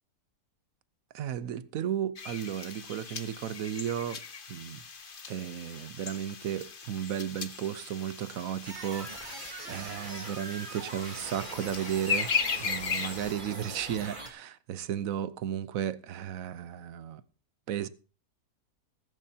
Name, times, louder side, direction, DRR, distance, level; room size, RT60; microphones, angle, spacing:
voice 1, 1.1-4.2 4.5-4.8 5.3-12.3 12.6-17.2 17.7-17.9, right 10 dB, 65° right, 1.1 m, -34 dB
sound 1, 2.2-13.3, left 5 dB, 40° left, 1.1 m, -37 dB
sound 2, 8.6-14.3, right 2 dB, 30° right, 2.3 m, -42 dB
20.0 x 11.0 x 2.8 m
omnidirectional pair, 1.6 m